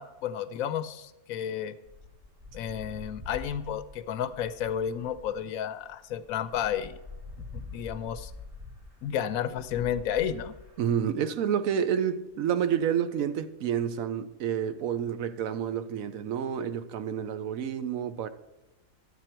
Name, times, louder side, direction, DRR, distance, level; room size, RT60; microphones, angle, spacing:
voice 1, 0.0-1.7 2.5-7.0 7.5-8.3 9.0-10.5, left 9 dB, 90° left, 1.1 m, -32 dB
sound 1, 1.9-11.0, left 3 dB, 25° right, 1.5 m, -46 dB
voice 2, 10.8-18.3, right 8 dB, 80° right, 1.1 m, -29 dB
11.5 x 8.2 x 4.5 m
omnidirectional pair, 1.4 m